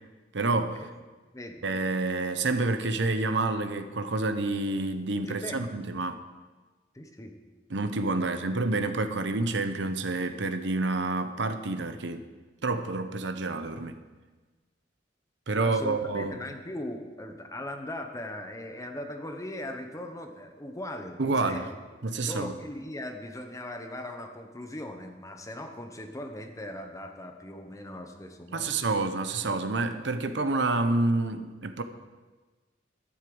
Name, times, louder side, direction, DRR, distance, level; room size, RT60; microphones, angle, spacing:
voice 1, 0.3-0.8 1.6-6.2 7.7-12.3 12.6-14.0 15.5-16.3 21.2-21.7 22.0-22.5 28.5-31.8, right 3 dB, 70° right, 8 dB, 0.9 m, -28 dB
voice 2, 1.3-1.6 5.3-5.8 6.9-7.4 8.5-8.6 15.6-21.7 22.0-28.8, left 1 dB, 20° left, 5 dB, 1.1 m, -39 dB
12.5 x 8.3 x 7.8 m, 1.3 s
head